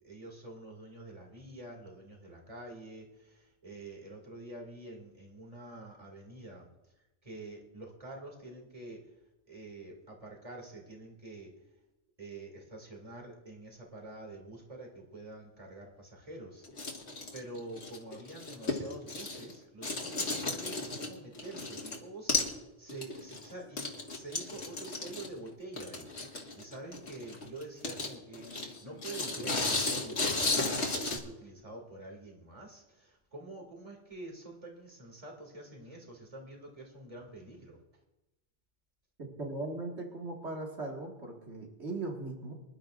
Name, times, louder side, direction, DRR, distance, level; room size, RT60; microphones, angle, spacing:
voice 1, 0.0-6.9 7.2-9.2 9.5-11.5 12.2-16.7 17.3-37.8, right 2 dB, 30° right, 0 dB, 2.6 m, -47 dB
sound 1, 16.6-19.6 19.8-22.0 22.3-22.6 22.9-31.2, left 3 dB, 80° left, 2.1 m, -34 dB
voice 2, 39.4-42.5, right 2 dB, 75° right, -1 dB, 2.2 m, -38 dB
25.5 x 11.5 x 2.5 m, 0.99 s
omnidirectional pair, 1.1 m